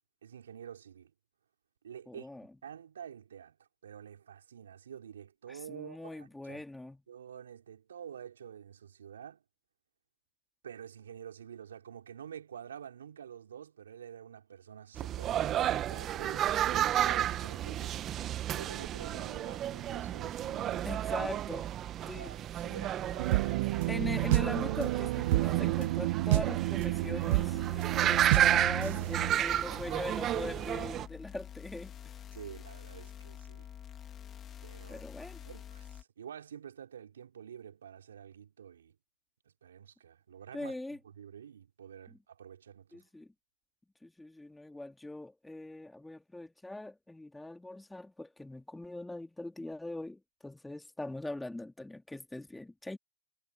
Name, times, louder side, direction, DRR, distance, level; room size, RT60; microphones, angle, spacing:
voice 1, 0.2-1.1 1.8-2.3 2.6-3.6 3.8-6.6 7.1-9.4 10.6-18.1 18.5-21.3 22.1-23.9 29.3-30.0 32.3-33.7 34.6-35.0 35.4-38.9 39.6-40.8 41.0-43.0, right 8 dB, 80° right, 4.8 m, -48 dB
voice 2, 2.1-2.5 5.5-7.0 17.0-17.1 20.8-21.7 22.1-22.3 23.9-27.6 28.0-32.2 34.9-35.4 40.5-41.0 42.1-42.2 42.9-43.3 44.0-53.0, left 2 dB, 5° left, 2.3 m, -41 dB
sound 1, 15.0-31.1, right 11 dB, 30° right, 1.6 m, -32 dB
sound 2, 23.2-29.3, right 18 dB, 55° right, 1.0 m, -30 dB
sound 3, 27.2-36.0, left 9 dB, 25° left, 2.9 m, -48 dB
hypercardioid pair, 120°, 0 cm